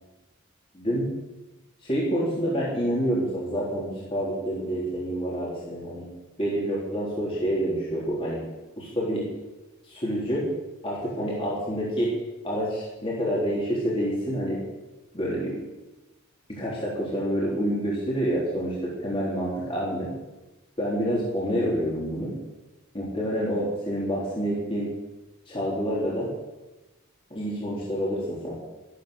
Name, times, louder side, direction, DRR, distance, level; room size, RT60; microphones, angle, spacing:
voice 1, 1.8-6.1 6.4-8.4 8.8-9.3 9.8-10.5 10.8-12.1 12.4-14.6 15.1-15.6 16.5-20.1 20.8-22.3 22.9-24.9 25.5-26.3 27.3-28.6, equal, 25° left, -6 dB, 3.6 m, -28 dB
13.5 x 12.0 x 6.6 m, 1.1 s
head